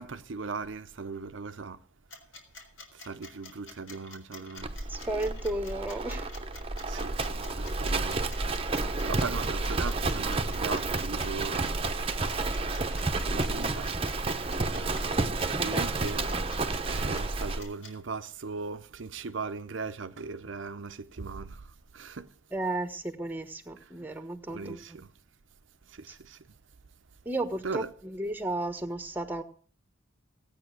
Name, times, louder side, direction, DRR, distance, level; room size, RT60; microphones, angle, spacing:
voice 1, 0.0-1.8 2.9-4.9 6.8-8.3 9.0-11.8 12.3-15.1 15.5-16.3 16.9-22.3 23.8-23.9 24.5-25.1 25.9-26.5 27.6-27.9, right 4 dB, 60° right, 0.6 m, -39 dB
sound 1, 2.1-17.9, left 3 dB, 80° left, 3.9 m, -47 dB
Livestock farm animals working animals, 4.6-17.6, right 3 dB, 25° right, 0.9 m, -30 dB
voice 2, 4.9-6.3 15.6-15.9 22.5-25.0 27.2-29.4, right 2 dB, 10° right, 1.3 m, -34 dB
16.5 x 9.0 x 6.3 m
head